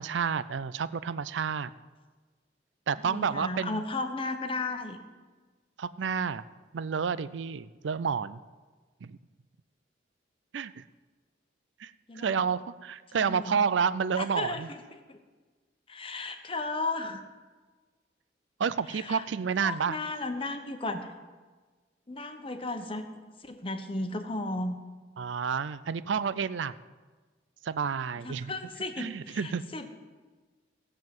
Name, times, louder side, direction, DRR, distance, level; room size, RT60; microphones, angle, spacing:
voice 1, 0.0-1.7 2.9-3.8 5.8-6.4 6.7-8.4 9.0-9.2 10.5-10.8 11.8-11.9 12.2-14.7 18.6-20.0 25.2-26.8 27.6-28.5 29.0-29.6, right 6 dB, 80° right, 16 dB, 0.4 m, -30 dB
voice 2, 3.0-5.0 12.1-12.3 13.1-13.6 14.2-14.8 15.1-15.2 15.9-17.2 18.9-19.2 19.6-21.1 22.1-23.1 23.4-24.8 28.2-29.9, left 2 dB, 30° left, 7 dB, 1.0 m, -35 dB
15.5 x 7.5 x 7.6 m, 1.4 s
head